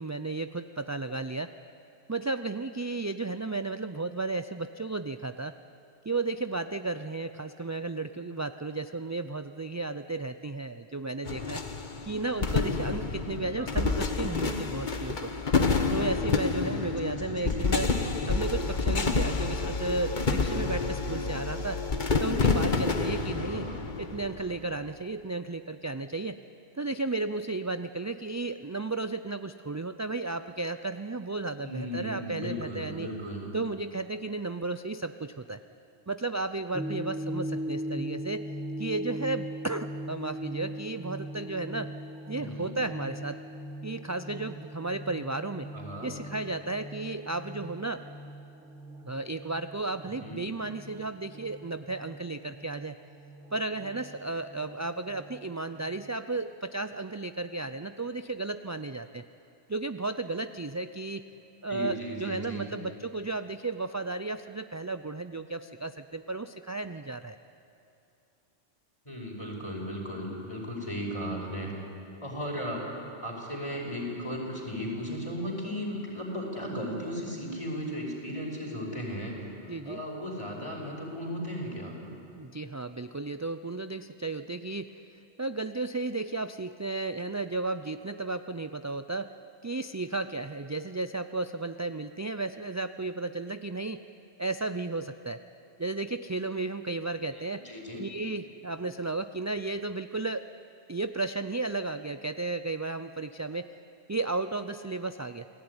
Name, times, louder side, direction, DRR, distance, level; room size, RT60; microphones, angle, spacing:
voice 1, 0.0-1.5 2.1-5.5 6.0-11.6 12.0-15.3 15.9-17.9 18.3-21.8 22.2-23.7 24.0-26.4 26.8-33.1 33.5-35.6 36.1-38.4 38.8-41.9 42.3-43.4 43.8-45.7 46.0-48.0 49.0-53.0 53.5-59.2 59.7-61.2 61.6-67.4 79.7-80.0 82.3-84.9 85.4-89.3 89.6-94.0 94.4-95.4 95.8-97.6 98.0-100.4 100.9-103.7 104.1-105.5, right 3 dB, 25° right, 10 dB, 0.3 m, -34 dB
sound 1, 11.2-24.8, left 4 dB, 45° left, 1.4 m, -29 dB
voice 2, 13.6-14.0 16.8-17.7 23.4-23.9 31.6-33.5 42.4-42.8 45.7-46.1 50.2-50.5 61.7-62.7 69.1-71.8 72.2-81.9 97.6-98.0, equal, 30° left, -1 dB, 5.4 m, -36 dB
sound 2, 36.7-56.2, equal, 5° right, 1.3 m, -40 dB
28.5 x 19.0 x 9.7 m, 2.6 s
omnidirectional pair, 1.1 m